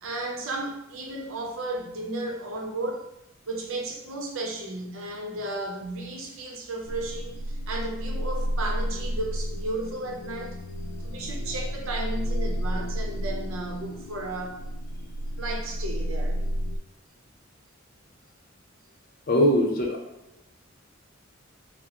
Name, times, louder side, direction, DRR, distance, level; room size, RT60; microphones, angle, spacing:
voice 1, 0.0-3.1 3.5-10.6 11.0-14.6 15.4-16.4, right 2 dB, 85° right, 1 dB, 0.7 m, -34 dB
sound 1, 6.9-16.8, equal, 90° left, 0.4 m, -31 dB
voice 2, 19.3-20.0, equal, 45° left, 0 dB, 0.7 m, -21 dB
4.8 x 2.0 x 2.9 m, 0.81 s
head